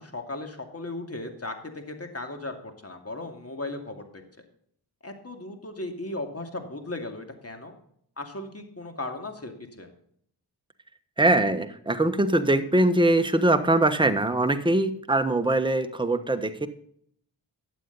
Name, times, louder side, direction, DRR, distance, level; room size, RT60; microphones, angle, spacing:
voice 1, 0.0-4.2 5.0-7.7 8.2-9.9, left 2 dB, 35° left, 5 dB, 2.5 m, -36 dB
voice 2, 11.2-16.7, right 2 dB, 10° right, 8 dB, 1.3 m, -22 dB
12.0 x 8.4 x 4.1 m, 0.66 s
cardioid pair, 45°, 44 cm